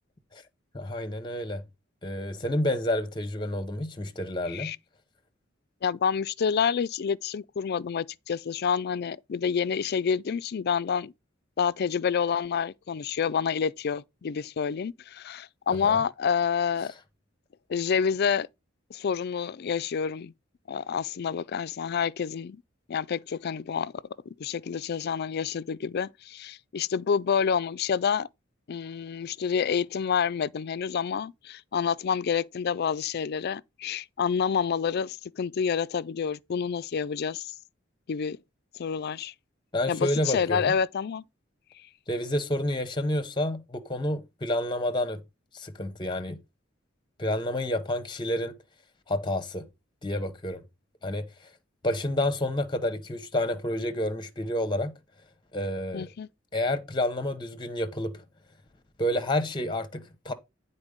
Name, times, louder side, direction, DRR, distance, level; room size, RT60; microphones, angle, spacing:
voice 1, 0.7-1.6 2.0-4.7 15.8-16.0 39.7-40.8 42.1-45.2 45.5-46.4 47.2-48.5 49.1-49.7 50.0-50.6 51.0-51.3 51.8-54.9 55.5-56.1 56.5-58.1 59.0-60.3, left 1 dB, 25° left, 0.8 m, -29 dB
voice 2, 5.8-11.1 11.6-16.9 17.7-18.5 18.9-20.3 20.7-22.6 22.9-23.9 24.4-28.3 28.7-37.5 38.1-38.4 38.7-39.3 39.9-41.2 55.9-56.3, left 6 dB, 55° left, 0.4 m, -28 dB
9.7 x 4.3 x 5.0 m
head